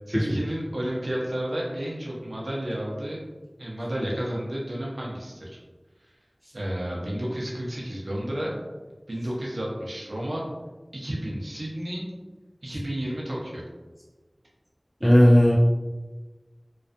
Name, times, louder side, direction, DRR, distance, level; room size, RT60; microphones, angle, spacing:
voice 1, 0.1-3.2 3.6-5.5 6.5-8.5 9.1-10.5 10.9-12.1 12.6-13.6, equal, 85° right, -3 dB, 0.5 m, -31 dB
voice 2, 15.0-15.6, equal, 5° left, -5 dB, 0.3 m, -16 dB
2.3 x 2.3 x 2.5 m, 1.2 s
wide cardioid pair, 40°, 0 cm